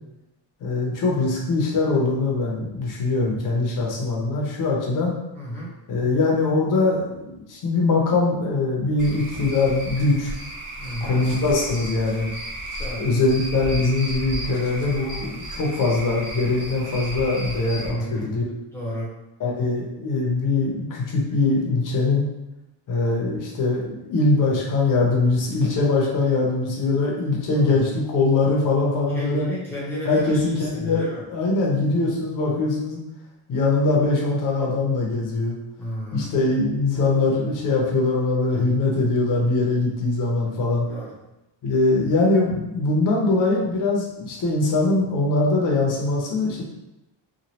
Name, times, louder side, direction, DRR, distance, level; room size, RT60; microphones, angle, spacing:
voice 1, 0.6-5.1 5.9-10.3 11.0-12.3 13.0-18.4 19.4-22.2 22.9-29.5 30.0-31.0 31.3-33.0 33.5-35.6 36.1-40.9 41.6-46.6, left 3 dB, 40° left, -2 dB, 0.7 m, -22 dB
voice 2, 5.3-5.7 10.8-11.2 12.8-13.1 17.8-18.3 18.7-19.2 27.5-27.8 29.1-31.2 35.8-36.4 40.9-41.2, equal, 5° left, -8 dB, 0.7 m, -32 dB
Cricket / Frog, 9.0-17.9, right 1 dB, 40° right, 0.5 m, -34 dB
3.1 x 2.3 x 2.8 m, 0.95 s
cardioid pair, 175°, 50 cm